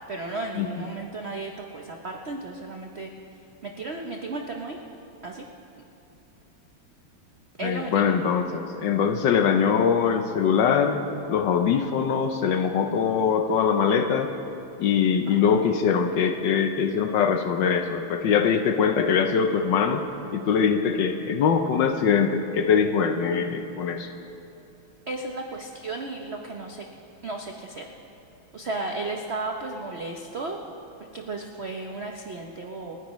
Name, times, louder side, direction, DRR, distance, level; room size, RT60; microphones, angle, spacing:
voice 1, 0.1-3.1 3.6-4.8 5.2-5.4 7.6-8.1 15.3-15.6 25.1-26.8 27.2-27.8 28.5-30.6 31.1-33.0, right 2 dB, 80° right, 1 dB, 0.5 m, -34 dB
voice 2, 7.6-11.0 11.3-14.3 14.8-20.0 20.3-24.1, left 7 dB, 70° left, 6 dB, 1.2 m, -22 dB
28.0 x 10.0 x 3.1 m, 2.7 s
omnidirectional pair, 2.4 m